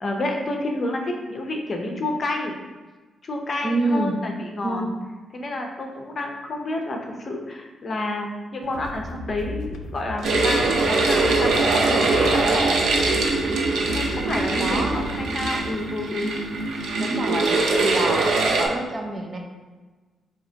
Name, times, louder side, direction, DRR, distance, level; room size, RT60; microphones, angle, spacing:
voice 1, 0.0-2.6 3.2-4.8 5.3-12.8 13.9-16.3, left 2 dB, 40° left, 2 dB, 0.7 m, -29 dB
voice 2, 3.6-4.2 4.6-4.9 14.6-14.9 17.0-17.5 17.8-19.4, right 2 dB, 30° right, 1 dB, 0.6 m, -26 dB
sound 1, 8.6-15.6, left 3 dB, 80° left, 0.4 m, -35 dB
sound 2, 10.2-18.7, right 3 dB, 85° right, 0.6 m, -22 dB
3.9 x 2.9 x 4.5 m, 1.3 s
cardioid pair, 105°, 0 cm